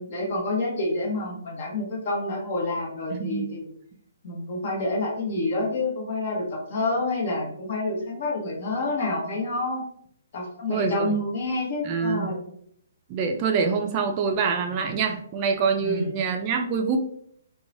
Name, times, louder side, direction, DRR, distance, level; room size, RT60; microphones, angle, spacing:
voice 1, 0.0-3.7 4.2-9.8 10.3-12.5 15.8-16.1, left 2 dB, 50° left, -1 dB, 1.0 m, -28 dB
voice 2, 3.1-3.5 10.7-11.1 11.8-12.3 13.1-17.0, right 5 dB, 30° right, 4 dB, 0.3 m, -25 dB
2.9 x 2.2 x 2.5 m, 0.66 s
hypercardioid pair, 140°, 0 cm